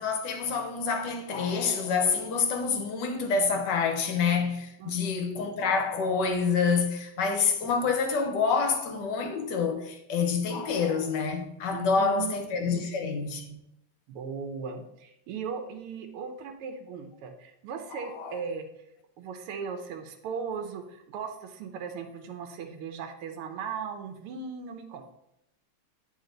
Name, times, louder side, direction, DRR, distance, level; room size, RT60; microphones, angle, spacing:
voice 1, 0.0-13.6 17.9-18.3, left 5 dB, 60° left, 1.3 m, -27 dB
voice 2, 4.8-5.1 11.7-13.0 14.1-18.7 19.2-25.0, right 6 dB, 90° right, 1.6 m, -38 dB
9.6 x 3.6 x 3.8 m
omnidirectional pair, 2.4 m